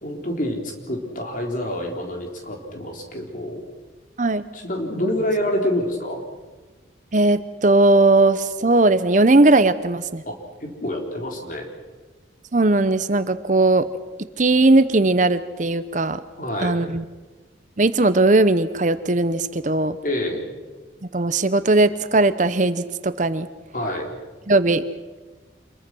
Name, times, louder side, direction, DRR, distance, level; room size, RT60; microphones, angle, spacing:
voice 1, 0.0-3.6 4.5-6.2 10.3-11.7 16.4-16.7 20.0-20.4 23.7-24.1, left 1 dB, 45° left, 2 dB, 4.0 m, -27 dB
voice 2, 7.1-10.2 12.5-13.9 14.4-16.2 16.6-17.0 17.8-20.0 21.1-23.5 24.5-24.8, right 2 dB, 40° right, 13 dB, 0.8 m, -18 dB
27.0 x 22.5 x 6.2 m, 1.3 s
head